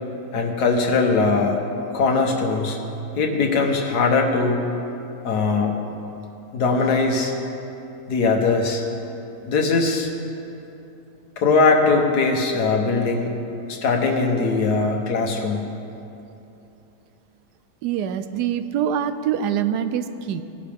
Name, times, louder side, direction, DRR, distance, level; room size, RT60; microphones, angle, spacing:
voice 1, 0.3-1.6 1.9-2.8 3.2-4.6 5.2-5.8 6.5-7.3 8.1-8.8 9.5-10.1 11.4-13.4 13.7-15.7, left 4 dB, 80° left, 2 dB, 1.7 m, -20 dB
voice 2, 17.8-20.4, right 9 dB, 85° right, 11 dB, 1.2 m, -24 dB
18.0 x 10.5 x 3.6 m, 2.8 s
omnidirectional pair, 1.7 m